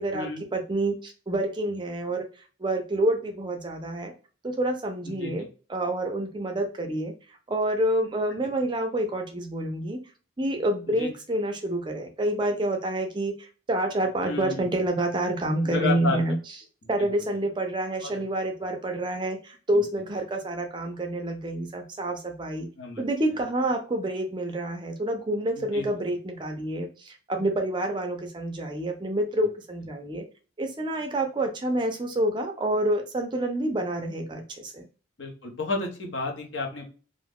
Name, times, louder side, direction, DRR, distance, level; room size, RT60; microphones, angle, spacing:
voice 1, 0.5-2.2 2.6-4.1 4.4-7.1 7.5-10.0 10.4-16.4 16.9-22.7 23.0-30.2 30.6-34.8, right 1 dB, 20° right, 4 dB, 0.4 m, -28 dB
voice 2, 14.2-14.7 15.6-16.2 18.0-18.1 22.8-23.0 25.6-25.8 35.2-36.9, left 3 dB, 60° left, 2 dB, 0.8 m, -31 dB
2.5 x 2.3 x 3.4 m, 0.36 s
head